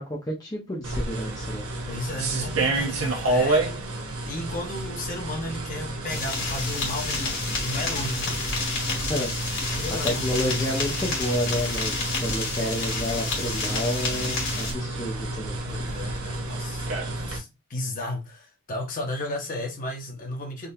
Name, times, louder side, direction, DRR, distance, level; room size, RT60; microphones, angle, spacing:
voice 1, 0.0-1.6 9.1-9.3 10.0-15.6, equal, 15° left, 0.7 m, -30 dB
sound 1, 0.8-17.4, right 2 dB, 75° right, 1.0 m, -30 dB
voice 2, 1.9-3.7 4.2-8.4 9.7-10.7 15.7-20.7, left 1 dB, 40° left, 1.0 m, -34 dB
sound 2, 6.1-14.7, left 3 dB, 55° left, 1.9 m, -30 dB
3.8 x 2.7 x 2.6 m
head